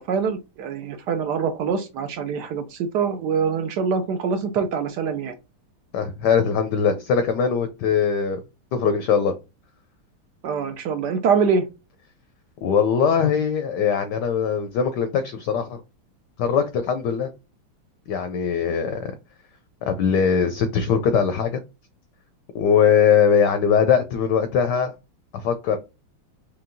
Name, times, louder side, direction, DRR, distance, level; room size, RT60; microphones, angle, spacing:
voice 1, 0.0-5.3 10.4-11.7, right 6 dB, 75° right, 1.0 m, -24 dB
voice 2, 5.9-8.4 8.7-9.3 12.6-15.8 16.4-17.3 18.1-19.1 19.8-21.6 22.5-24.9 25.3-25.8, left 7 dB, 75° left, 1.0 m, -21 dB
4.6 x 3.2 x 2.5 m
omnidirectional pair, 2.3 m